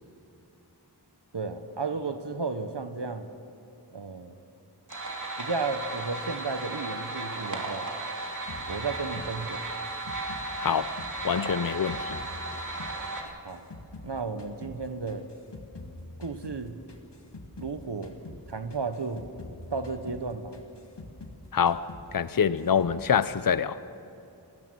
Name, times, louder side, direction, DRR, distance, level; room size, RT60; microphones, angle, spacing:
voice 1, 1.3-3.3 3.9-4.3 5.4-7.9 8.7-9.7 13.4-13.6 14.0-15.3 16.2-16.8 17.6-18.2 18.5-19.2 19.7-20.6, right 4 dB, 80° right, 1.1 m, -33 dB
sound 1, 4.9-13.2, right 2 dB, 45° right, 2.8 m, -35 dB
sound 2, 8.5-11.2 11.4-14.1 14.4-17.8 18.0-18.4 18.7-21.4 21.7-22.1 22.3-23.0, left 2 dB, 80° left, 1.8 m, -45 dB
voice 2, 10.6-11.0 11.2-12.2 21.5-23.8, left 7 dB, 55° left, 0.6 m, -26 dB
30.0 x 14.0 x 6.2 m
wide cardioid pair, 40°, 41 cm